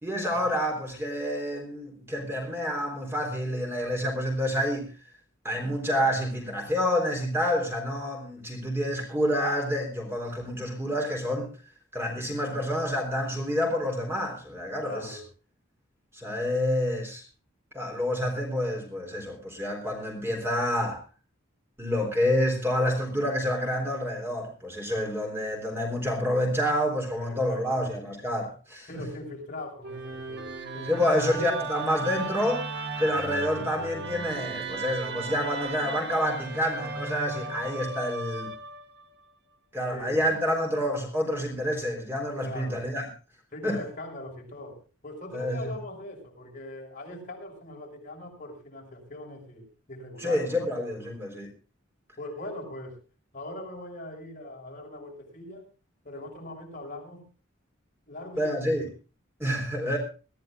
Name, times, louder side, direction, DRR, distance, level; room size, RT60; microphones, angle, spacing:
voice 1, 0.0-4.9 5.4-11.5 11.9-15.2 16.1-17.2 17.7-21.0 21.8-29.0 30.8-32.7 33.0-38.5 39.7-43.1 43.6-43.8 45.3-45.6 50.2-51.5 58.4-58.9 59.4-60.0, equal, 10° right, 2 dB, 3.7 m, -28 dB
voice 2, 14.8-15.3 27.2-27.9 28.9-31.6 39.9-40.2 42.4-42.8 43.5-50.5 50.9-51.1 52.2-53.0 53.3-55.6 56.0-57.2 58.1-58.8, left 1 dB, 40° left, 0 dB, 6.2 m, -41 dB
Musical instrument, 29.8-39.0, right 3 dB, 60° right, 1.7 m, -36 dB
22.5 x 15.0 x 2.4 m, 0.34 s
head